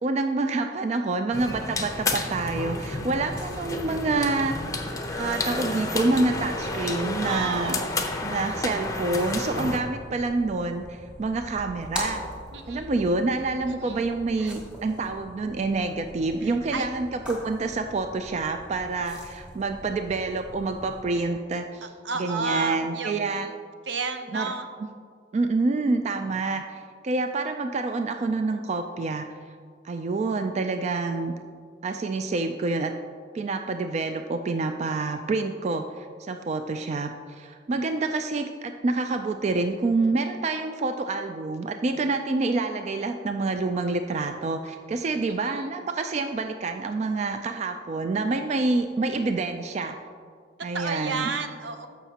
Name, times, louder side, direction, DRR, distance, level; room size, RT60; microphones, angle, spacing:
voice 1, 0.0-4.6 5.1-7.8 8.2-12.2 12.7-23.5 24.3-24.5 25.3-29.3 29.8-31.3 31.8-32.9 33.3-49.9 50.6-51.3, right 3 dB, 35° right, 6 dB, 0.3 m, -27 dB
sound 1, 1.3-9.8, left 2 dB, 20° left, 0.7 m, -31 dB
sound 2, 2.9-21.0, left 1 dB, 5° right, 1.7 m, -43 dB
voice 2, 7.2-7.9 12.5-12.9 13.7-14.1 14.4-14.5 16.4-16.9 21.8-23.5 23.9-24.7 45.5-45.7 50.7-51.9, right 4 dB, 75° right, 7 dB, 0.7 m, -32 dB
14.0 x 5.8 x 2.8 m, 2.1 s
head